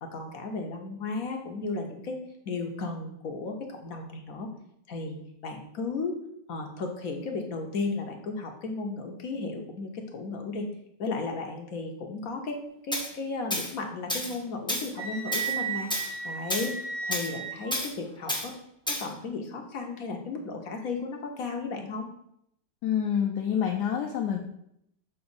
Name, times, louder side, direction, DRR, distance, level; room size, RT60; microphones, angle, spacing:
voice 1, 0.0-4.5 4.9-5.2 5.4-6.1 6.5-10.7 11.0-12.6 12.8-15.9 16.2-16.7 17.0-18.5 18.9-22.1, left 3 dB, 60° left, 3 dB, 1.1 m, -34 dB
Tools, 12.9-13.1 13.5-13.7 14.1-14.4 14.7-14.9 15.3-15.5 15.9-16.1 16.5-16.7 17.1-17.3 17.7-17.9 18.3-18.5 18.9-19.1, left 1 dB, 5° left, 0.6 m, -30 dB
Wind instrument woodwind instrument, 15.0-17.8, right 5 dB, 80° right, 1.6 m, -34 dB
voice 2, 22.8-24.4, left 8 dB, 80° left, 1 dB, 1.2 m, -27 dB
6.9 x 2.9 x 5.2 m, 0.75 s
omnidirectional pair, 1.9 m